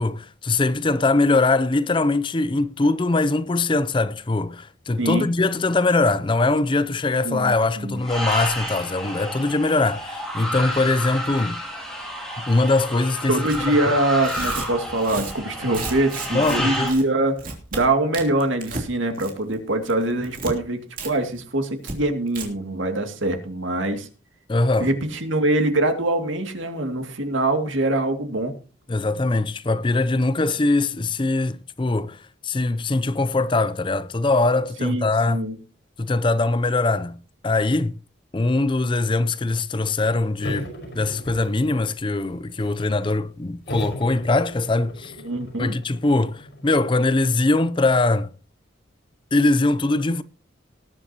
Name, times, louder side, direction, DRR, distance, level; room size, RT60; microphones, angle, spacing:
voice 1, 0.0-11.6 12.4-13.4 13.9-14.0 16.3-16.9 24.5-24.9 28.9-35.4 36.0-38.0 38.3-45.1 45.6-48.3 49.3-50.2, left 2 dB, 25° left, 0.5 m, -22 dB
voice 2, 7.2-8.0 13.3-17.4 17.7-24.1 24.8-28.6 34.8-35.5 45.2-45.7, right 2 dB, 80° right, 2.4 m, -23 dB
sound 1, 8.0-16.9, equal, ahead, 4.1 m, -30 dB
Tearing, 13.4-13.6 14.1-16.6 16.9-17.0 17.4-17.8 18.1-18.9 19.1-19.5 19.8-20.5 21.0-21.1 21.4-21.5 21.8-21.9 22.3-22.4, right 3 dB, 45° right, 3.1 m, -33 dB
sound 2, 40.4-41.9 42.3-43.0 43.7-46.9, equal, 60° left, 5.2 m, -37 dB
19.5 x 10.0 x 2.9 m
head